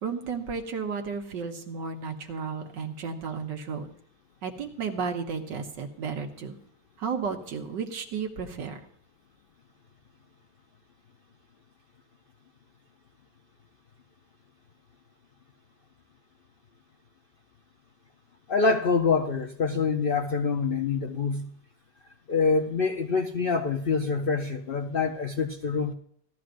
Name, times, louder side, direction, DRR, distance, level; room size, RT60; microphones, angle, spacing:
voice 1, 0.0-3.9 4.4-6.6 7.0-8.8, right 5 dB, 90° right, 3 dB, 1.9 m, -33 dB
voice 2, 18.5-21.5 22.3-25.9, left 4 dB, 75° left, 5 dB, 0.5 m, -26 dB
17.0 x 12.5 x 2.6 m, 0.65 s
omnidirectional pair, 1.9 m